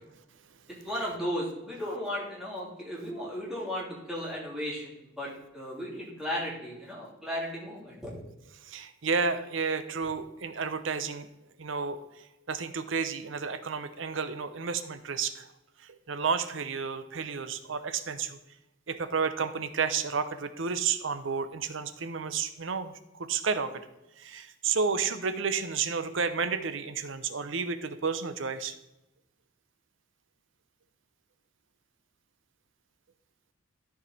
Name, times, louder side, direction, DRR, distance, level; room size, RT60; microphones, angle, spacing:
voice 1, 0.8-8.1, equal, ahead, -6 dB, 3.1 m, -35 dB
voice 2, 8.6-11.3 11.6-12.0 12.5-15.5 15.8-18.4 18.9-23.9 24.2-28.7, right 5 dB, 65° right, 11 dB, 0.7 m, -31 dB
13.0 x 4.8 x 4.1 m, 0.92 s
head